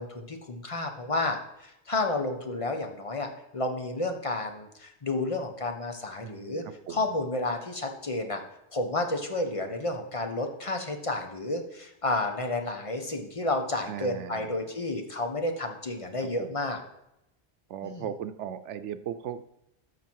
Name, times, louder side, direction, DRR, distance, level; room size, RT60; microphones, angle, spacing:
voice 1, 0.0-6.6 6.9-8.4 8.7-16.8 17.8-18.1, left 2 dB, 30° left, 4 dB, 1.1 m, -31 dB
voice 2, 6.2-7.0 13.9-14.6 16.4-16.5 17.7-19.4, right 9 dB, 90° right, 12 dB, 1.0 m, -37 dB
13.0 x 5.9 x 4.6 m, 0.87 s
omnidirectional pair, 1.2 m